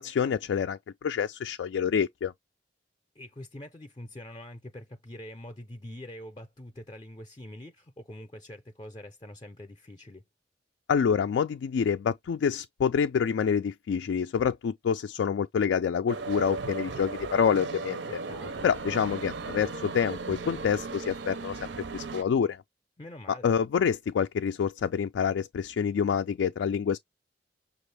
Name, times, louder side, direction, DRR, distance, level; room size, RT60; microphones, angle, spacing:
voice 1, 0.0-2.3 10.9-18.0 18.6-22.6 23.4-27.0, left 7 dB, 80° left, 0.3 m, -27 dB
voice 2, 3.2-10.2 18.1-18.7 23.0-23.5, left 1 dB, 25° left, 0.5 m, -44 dB
sound 1, 16.1-22.2, right 4 dB, 70° right, 0.6 m, -36 dB
6.0 x 2.4 x 3.2 m
head